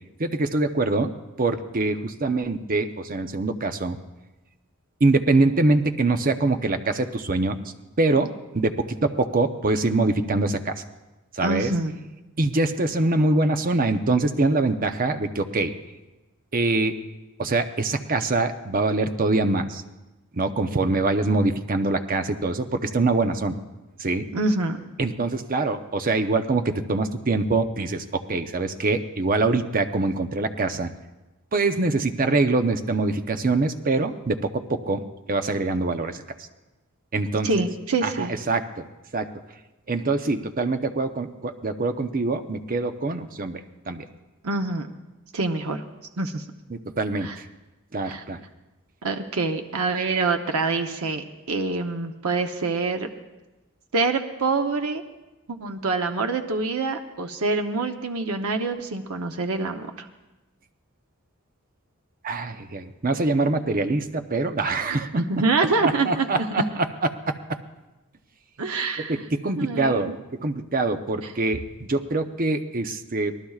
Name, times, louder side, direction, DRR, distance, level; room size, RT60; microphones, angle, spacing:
voice 1, 0.2-1.1 1.4-4.0 5.0-7.6 8.0-10.8 11.3-11.7 12.4-15.7 16.5-17.0 17.4-19.8 20.3-23.5 24.0-24.3 25.0-30.9 31.5-35.0 35.3-36.2 37.1-37.6 38.0-38.8 39.1-39.3 39.9-44.1 46.7-47.4 47.9-48.4 62.2-65.2 65.8-67.6 69.0-70.1 70.4-73.4, right 3 dB, 40° right, 8 dB, 0.7 m, -24 dB
voice 2, 11.4-12.0 24.3-24.8 37.4-38.3 44.4-44.9 45.3-45.8 46.2-46.4 47.2-47.4 48.0-48.2 49.0-53.1 53.9-55.0 55.5-60.1 64.9-66.6 68.6-69.2 69.6-70.2 71.2-71.3, right 3 dB, 85° right, 4 dB, 0.9 m, -26 dB
25.0 x 18.5 x 2.4 m, 1.1 s
head